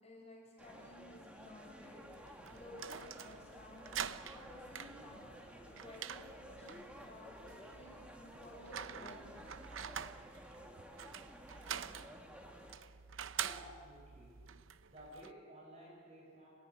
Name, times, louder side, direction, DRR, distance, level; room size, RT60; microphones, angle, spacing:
voice 1, 0.0-5.3 5.6-6.2 6.5-9.4, left 1 dB, 30° left, -3 dB, 7.1 m, -55 dB
sound 1, 0.6-12.8, equal, 5° right, 1.9 m, -54 dB
sound 2, 2.1-15.3, right 9 dB, 65° right, 0.7 m, -47 dB
voice 2, 13.4-14.5 14.9-16.5, equal, 30° right, -2 dB, 7.2 m, -55 dB
30.0 x 15.0 x 9.9 m, 2.1 s
head